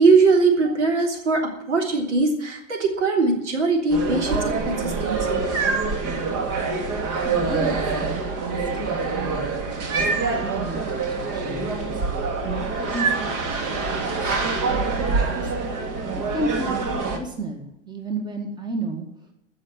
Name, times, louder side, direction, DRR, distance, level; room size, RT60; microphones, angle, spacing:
voice 1, 0.0-5.5, right 4 dB, 70° right, 1 dB, 3.4 m, -21 dB
sound 1, 3.9-17.2, right 4 dB, 40° right, 2.4 m, -25 dB
voice 2, 7.2-9.5 10.0-12.0 12.4-13.3 13.7-14.4 14.7-15.5 16.3-19.1, right 2 dB, 10° right, 4 dB, 2.0 m, -33 dB
15.0 x 6.3 x 9.2 m, 0.81 s
figure-of-eight pair, 95°, 37 cm